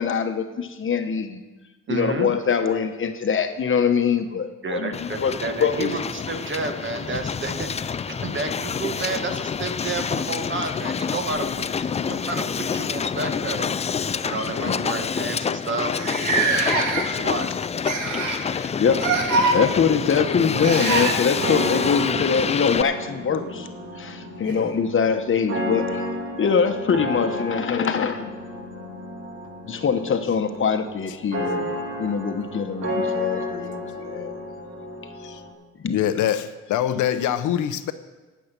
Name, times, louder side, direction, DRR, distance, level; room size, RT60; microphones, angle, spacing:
voice 1, 0.0-1.4 1.9-5.3 5.6-5.9 14.7-14.8 18.5-23.7 23.9-26.1 26.3-28.3 29.7-34.4 35.8-36.0, left 6 dB, 40° left, 7 dB, 1.1 m, -23 dB
voice 2, 1.9-2.3 4.6-13.7 14.2-16.7 17.1-17.5, right 3 dB, 40° right, 5 dB, 1.5 m, -31 dB
Hiss, 4.9-22.8, left 6 dB, 25° left, 0.3 m, -27 dB
sound 1, 11.3-12.5 13.5-13.7 14.1-14.2 15.0-15.1 15.2-15.3 15.9-17.3 17.8-18.5 19.0-19.6 20.6-21.2 23.3-23.4 24.4-24.5, right 3 dB, 75° right, 2.0 m, -24 dB
sound 2, 20.5-35.5, left 1 dB, 55° right, 2.4 m, -32 dB
voice 3, 35.9-37.9, left 10 dB, 80° left, 11 dB, 0.8 m, -24 dB
12.0 x 8.4 x 6.1 m, 1.2 s
cardioid pair, 90°, 30 cm